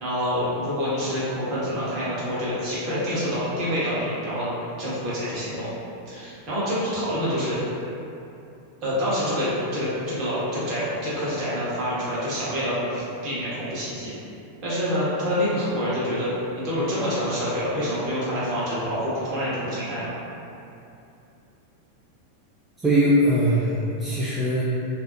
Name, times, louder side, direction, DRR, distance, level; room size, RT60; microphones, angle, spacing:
voice 1, 0.0-4.5 4.8-5.7 6.0-7.6 8.8-14.1 14.6-16.3 16.5-20.1, equal, 40° right, -10 dB, 1.0 m, -27 dB
voice 2, 22.8-24.6, equal, 15° right, -8 dB, 0.3 m, -21 dB
2.7 x 2.0 x 2.4 m, 2.7 s
figure-of-eight pair, 90°, 0 cm